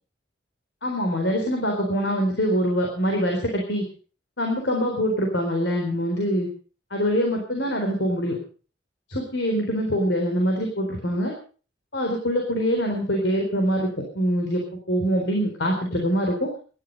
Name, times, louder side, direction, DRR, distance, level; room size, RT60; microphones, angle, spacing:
voice 1, 0.8-3.8 4.4-6.5 6.9-8.4 9.1-11.3 11.9-14.6 14.9-16.5, equal, 75° left, 1 dB, 4.0 m, -24 dB
17.5 x 12.5 x 5.3 m, 0.39 s
head